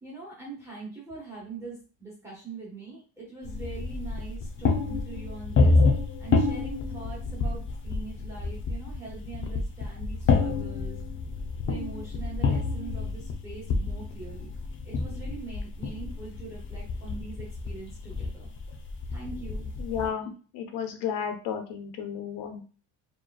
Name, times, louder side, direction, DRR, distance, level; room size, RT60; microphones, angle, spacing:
voice 1, 0.0-5.8 6.2-11.0 11.6-14.5 14.8-18.5 19.1-19.7, right 4 dB, 5° right, -6 dB, 1.3 m, -42 dB
sound 1, 3.4-20.1, left 3 dB, 30° left, 0.6 m, -28 dB
voice 2, 19.8-22.6, left 8 dB, 85° left, 5 dB, 1.1 m, -33 dB
4.8 x 3.2 x 2.4 m, 0.37 s
cardioid pair, 150°, 40 cm